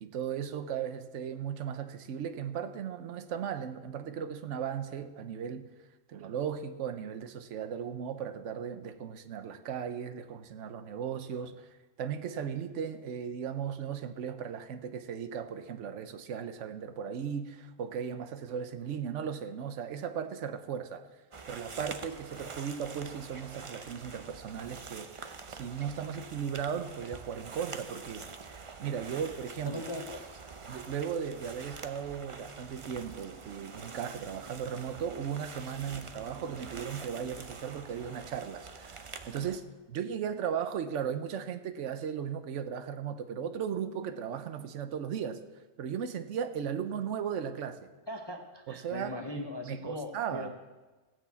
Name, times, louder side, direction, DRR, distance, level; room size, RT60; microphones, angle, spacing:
voice 1, 0.0-5.7 6.1-11.7 12.0-21.0 21.5-29.8 30.7-39.6 39.9-45.4 45.8-47.9 48.7-50.5, right 8 dB, 65° right, 9 dB, 1.1 m, -36 dB
sound 1, 21.3-39.6, right 4 dB, 35° right, 0.5 m, -46 dB
voice 2, 29.6-30.3 35.7-36.0 48.1-50.5, left 2 dB, 25° left, 4 dB, 0.6 m, -40 dB
15.0 x 6.3 x 8.2 m, 1.2 s
omnidirectional pair, 1.4 m